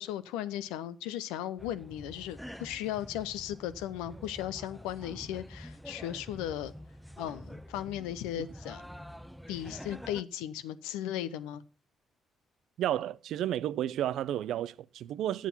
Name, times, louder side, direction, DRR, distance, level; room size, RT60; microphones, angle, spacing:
voice 1, 0.0-6.7 7.2-8.8 9.5-11.6, left 12 dB, 80° left, 0.6 m, -36 dB
sound 1, 1.6-10.2, equal, ahead, 0.8 m, -47 dB
voice 2, 12.8-15.5, right 12 dB, 70° right, 0.5 m, -32 dB
10.0 x 7.3 x 5.6 m
hypercardioid pair, 40°, 0 cm